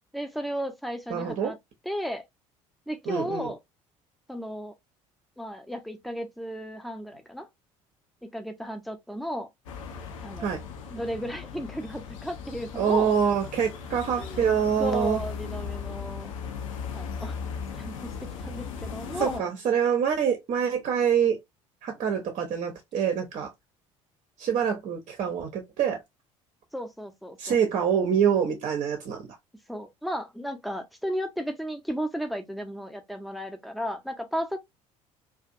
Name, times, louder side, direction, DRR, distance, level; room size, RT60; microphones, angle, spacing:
voice 1, 0.1-1.6 1.8-2.2 2.9-3.6 4.3-4.7 5.4-7.5 8.2-9.5 10.2-10.5 10.9-13.2 13.9-14.5 14.8-16.3 16.9-17.4 17.7-19.5 26.7-27.6 29.7-34.6, equal, ahead, 0.6 m, -34 dB
voice 2, 1.1-1.5 3.1-3.5 10.4-10.6 12.8-15.2 19.2-21.4 21.8-23.5 24.4-26.0 27.4-29.2, right 7 dB, 45° right, 0.7 m, -25 dB
sound 1, 9.7-19.4, left 6 dB, 70° left, 0.6 m, -37 dB
2.5 x 2.4 x 2.5 m
figure-of-eight pair, 60°, 17 cm